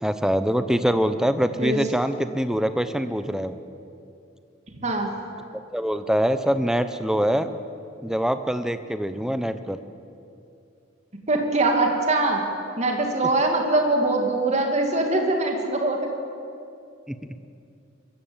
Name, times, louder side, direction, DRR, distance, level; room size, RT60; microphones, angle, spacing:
voice 1, 0.0-3.6 5.7-7.5 8.0-9.8 17.1-17.2, equal, 5° right, 10 dB, 0.8 m, -24 dB
voice 2, 4.8-5.1 11.3-12.4 12.8-16.0, right 2 dB, 35° right, 2 dB, 2.6 m, -22 dB
23.5 x 15.0 x 8.9 m, 2.5 s
head